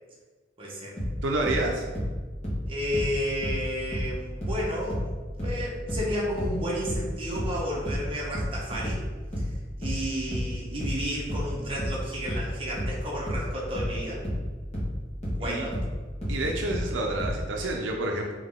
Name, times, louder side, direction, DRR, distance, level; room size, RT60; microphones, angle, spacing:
voice 1, 0.6-1.0 2.7-5.1 5.4-9.0 9.4-9.5 9.8-14.2 15.3-15.8, equal, 30° right, -4 dB, 0.9 m, -32 dB
sound 1, 1.0-4.2 4.4-17.4, equal, 35° left, 1.3 m, -31 dB
voice 2, 1.2-1.8 15.4-15.7 16.3-18.3, right 2 dB, 75° right, 1 dB, 0.5 m, -29 dB
3.8 x 3.0 x 3.6 m, 1.4 s
head